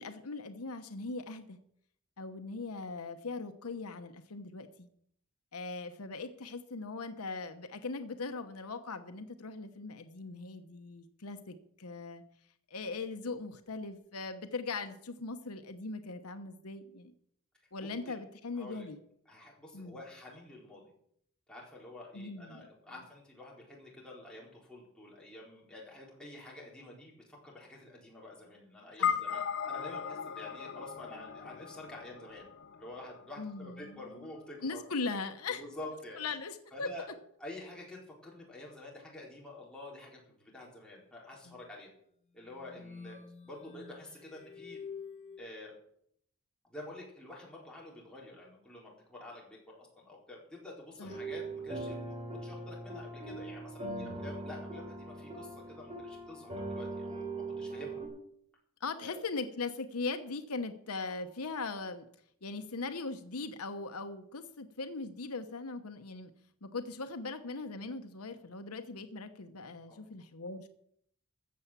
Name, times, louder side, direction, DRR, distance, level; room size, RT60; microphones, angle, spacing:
voice 1, 0.0-1.6 2.2-4.9 5.5-12.2 12.7-17.1 17.7-19.0 19.7-20.0 22.1-22.7 29.0-29.1 33.4-34.0 34.6-35.6 36.2-36.9 41.5-41.6 51.0-51.1 53.8-54.2 58.8-62.1 62.4-66.3 66.6-70.7, left 3 dB, 80° left, 8 dB, 1.0 m, -40 dB
voice 2, 17.8-18.2 18.6-18.9 19.3-20.9 21.5-32.4 32.8-35.2 35.5-36.2 36.7-37.1 37.4-41.9 42.3-43.2 43.4-44.8 45.4-45.7 46.7-58.0 59.0-59.2 69.9-70.0, left 2 dB, 5° left, -4 dB, 4.3 m, -48 dB
sound 1, 29.0-33.6, left 8 dB, 55° left, 0.6 m, -37 dB
sound 2, 42.4-45.4, left 6 dB, 30° left, 1.8 m, -48 dB
sound 3, 51.0-58.1, right 2 dB, 30° right, 3.9 m, -41 dB
15.0 x 7.0 x 7.4 m, 0.69 s
head